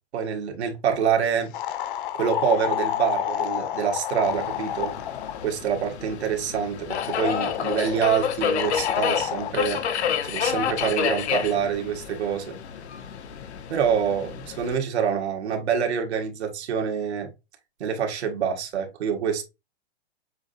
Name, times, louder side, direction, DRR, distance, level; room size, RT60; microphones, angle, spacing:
voice 1, 0.1-1.5 2.1-4.9 5.4-9.8 10.2-12.5 13.7-17.3 17.8-19.4, right 7 dB, 80° right, 1.7 m, -26 dB
sound 1, 1.5-5.5 6.9-8.1 8.6-9.5, left 11 dB, 50° left, 0.8 m, -29 dB
Subway metro underground, 4.2-14.8, left 8 dB, 85° left, 1.0 m, -30 dB
7.2 x 2.8 x 2.6 m
hypercardioid pair, 150°, 33 cm